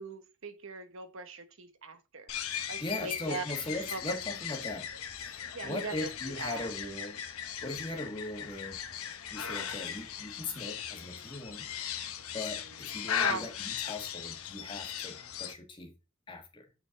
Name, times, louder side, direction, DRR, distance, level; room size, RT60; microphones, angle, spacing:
voice 1, 0.0-2.3 2.7-4.2 5.5-6.7 7.7-7.8 13.1-13.5, right 3 dB, 65° right, 1.1 m, -41 dB
sound 1, 2.3-15.5, left 9 dB, 80° left, 1.0 m, -38 dB
voice 2, 2.4-4.9 5.2-5.3 5.6-7.2 7.6-8.8 9.3-11.7 12.3-15.9 16.3-16.6, left 2 dB, 20° left, 1.4 m, -39 dB
8.4 x 4.4 x 3.7 m
head